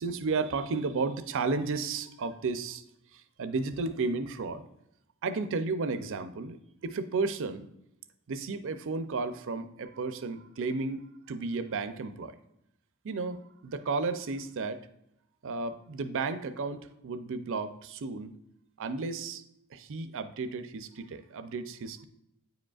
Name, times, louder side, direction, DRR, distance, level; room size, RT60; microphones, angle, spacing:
voice 1, 0.0-2.8 3.1-4.6 5.2-6.6 6.8-7.7 8.3-11.0 11.3-12.3 13.0-14.8 15.4-18.3 18.8-19.4 19.7-22.1, right 4 dB, 60° right, 10 dB, 0.5 m, -33 dB
9.2 x 5.0 x 2.4 m, 0.78 s
head